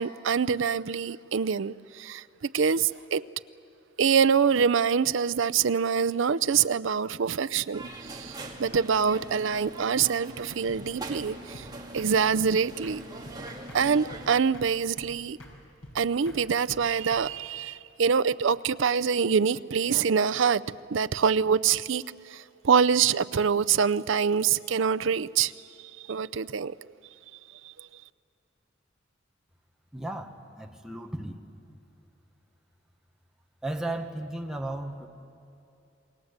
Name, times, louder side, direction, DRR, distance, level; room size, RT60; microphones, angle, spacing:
voice 1, 0.0-3.2 4.0-11.7 11.9-13.0 13.7-15.4 15.9-20.6 20.9-22.0 22.3-25.5 26.0-26.7 27.8-27.9, right 6 dB, 70° right, 0.5 m, -25 dB
sound 1, 7.7-14.3, right 2 dB, 20° right, 1.9 m, -42 dB
sound 2, 10.7-10.8 11.1-11.3 11.5-11.7 12.0-12.1 12.4-12.5 12.8-13.0 13.3-13.8 14.1-14.3 14.5-14.7 15.0-15.1 15.4-15.6 15.8-16.0 16.3-16.4 16.7-17.3, left 1 dB, 80° left, 5.1 m, -46 dB
voice 2, 29.9-31.4 33.6-35.1, right 1 dB, 5° right, 1.2 m, -35 dB
28.0 x 21.0 x 8.1 m
head